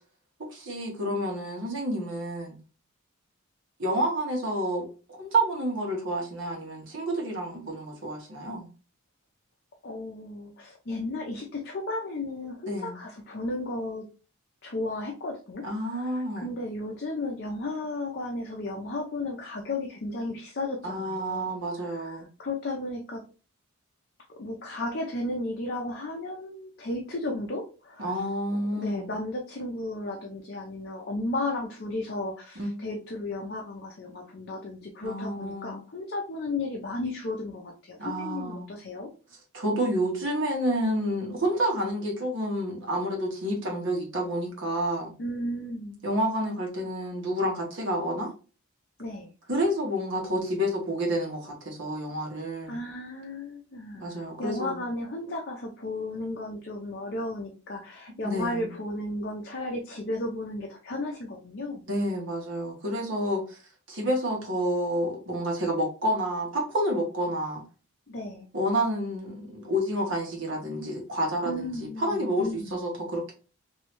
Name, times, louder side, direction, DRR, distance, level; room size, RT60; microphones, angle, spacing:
voice 1, 0.5-2.6 3.8-4.9 5.2-8.7 12.7-12.9 15.6-16.5 20.8-22.3 28.0-29.1 32.6-32.9 35.0-35.8 38.0-38.7 39.5-45.1 46.0-48.3 49.5-52.8 54.0-54.8 58.2-58.7 61.9-63.6 63.9-67.6 68.5-73.3, right 1 dB, 60° right, 1.1 m, -29 dB
voice 2, 9.8-14.1 14.6-21.5 21.8-23.2 24.4-28.2 28.5-39.1 45.2-46.0 49.0-49.3 52.7-54.1 54.4-61.8 68.1-68.5 71.4-72.8, left 2 dB, 50° left, 0.5 m, -34 dB
3.1 x 2.7 x 2.9 m
head